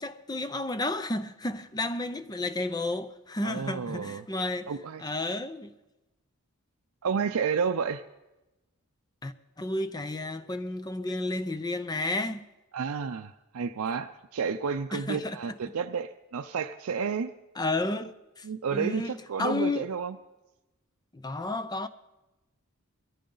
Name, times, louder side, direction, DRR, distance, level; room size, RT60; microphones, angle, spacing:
voice 1, 0.0-4.7 5.0-5.7 9.2-12.5 14.9-15.6 17.6-19.9 21.1-21.9, left 2 dB, 20° left, 0.6 m, -32 dB
voice 2, 3.4-4.2 4.7-5.0 7.0-8.0 12.7-17.3 18.4-20.2, right 6 dB, 80° right, 0.5 m, -31 dB
21.0 x 14.0 x 3.9 m
head